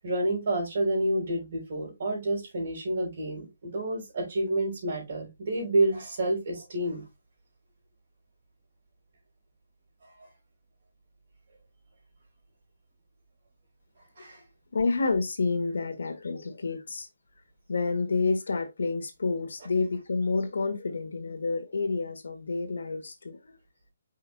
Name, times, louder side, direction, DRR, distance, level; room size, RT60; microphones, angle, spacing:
voice 1, 0.0-7.0 14.2-14.4, right 1 dB, 40° right, 4.5 m, -29 dB
voice 2, 14.7-17.1 17.7-23.6, left 3 dB, 80° left, 1.5 m, -29 dB
5.6 x 5.3 x 3.4 m
hypercardioid pair, 175°, 0 cm